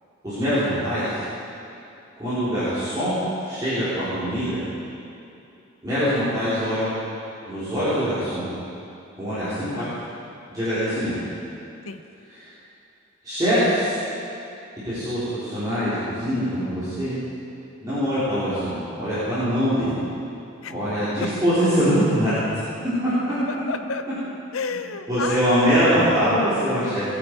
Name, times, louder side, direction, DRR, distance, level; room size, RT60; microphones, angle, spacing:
voice 1, 0.2-1.2 2.2-3.2 3.4-4.6 5.8-7.0 7.5-8.5 9.2-9.8 10.5-11.2 12.3-12.5 13.2-14.0 14.8-17.1 17.8-20.0 20.7-22.6 25.1-27.0, equal, 20° right, -15 dB, 4.0 m, -23 dB
voice 2, 9.7-10.2 11.9-12.0 20.6-20.7 23.5-24.0 24.5-25.4, left 4 dB, 85° left, 9 dB, 0.7 m, -31 dB
19.5 x 9.0 x 4.8 m, 2.7 s
head